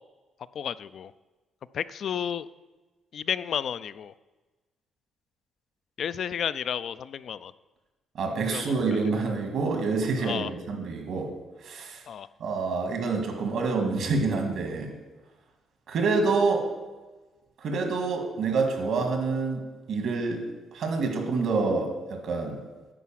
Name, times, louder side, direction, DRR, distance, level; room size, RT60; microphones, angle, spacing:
voice 1, 0.5-1.1 1.7-2.5 3.1-4.1 6.0-7.5 8.5-9.0 10.2-10.5 12.1-12.3, left 8 dB, 60° left, 15 dB, 0.3 m, -32 dB
voice 2, 8.1-11.3 11.6-12.0 12.4-14.9 15.9-16.7 17.6-20.5 20.7-22.6, right 4 dB, 70° right, 4 dB, 1.9 m, -27 dB
10.0 x 4.7 x 7.4 m, 1.2 s
cardioid pair, 90°, 0 cm